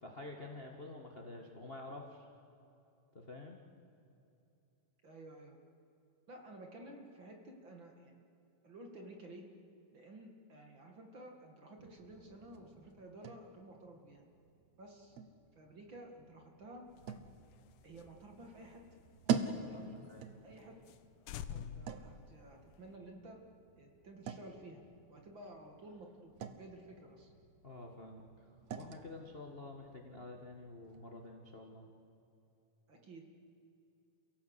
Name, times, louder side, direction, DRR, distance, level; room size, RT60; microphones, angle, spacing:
voice 1, 0.0-2.3 3.1-3.6 19.7-20.3 27.6-31.8, left 2 dB, 30° left, 2 dB, 1.1 m, -49 dB
voice 2, 5.0-5.6 6.3-8.2 8.6-9.5 9.9-14.3 14.8-15.2 15.6-16.9 17.8-18.8 19.7-20.0 20.4-20.9 21.4-23.4 23.8-24.8 25.1-27.3 32.9-33.2, right 1 dB, 40° right, 2 dB, 2.3 m, -53 dB
sound 1, 11.8-31.3, right 6 dB, 65° right, 2.0 m, -46 dB
sound 2, 16.9-19.8 20.1-20.2 20.5-20.6 20.9-21.0 21.3-23.0, left 8 dB, 80° left, 2.4 m, -49 dB
29.5 x 17.0 x 8.2 m, 2.8 s
omnidirectional pair, 3.9 m